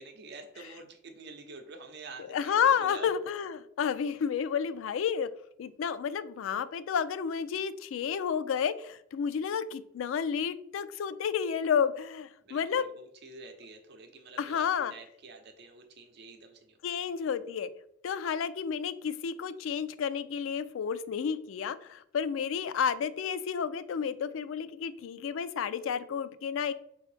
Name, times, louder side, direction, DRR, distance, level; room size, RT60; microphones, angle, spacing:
voice 1, 0.0-3.1 12.4-17.1, right 3 dB, 60° right, 5 dB, 0.7 m, -48 dB
voice 2, 2.3-5.3 5.6-12.9 14.4-14.9 16.8-17.7 18.0-26.7, left 7 dB, 85° left, 15 dB, 0.3 m, -31 dB
4.4 x 3.0 x 3.3 m, 0.71 s
head